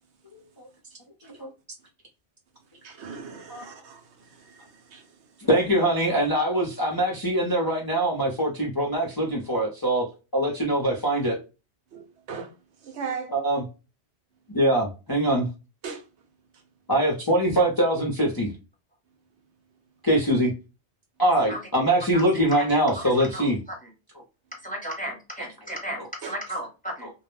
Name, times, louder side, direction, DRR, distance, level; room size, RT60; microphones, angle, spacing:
voice 1, 2.8-5.1 11.9-12.5 12.8-13.3 15.8-16.0 26.2-26.4, right 5 dB, 75° right, 0.9 m, -38 dB
voice 2, 5.5-10.1 10.3-11.4 13.3-13.6 14.5-15.5 16.9-18.5 20.0-20.5 21.2-23.6 26.0-26.1 27.0-27.1, right 1 dB, 30° left, 0.4 m, -23 dB
voice 3, 22.7-23.5 23.8-23.9 24.6-27.1, equal, 10° left, 0.8 m, -35 dB
2.2 x 2.1 x 3.0 m
omnidirectional pair, 1.2 m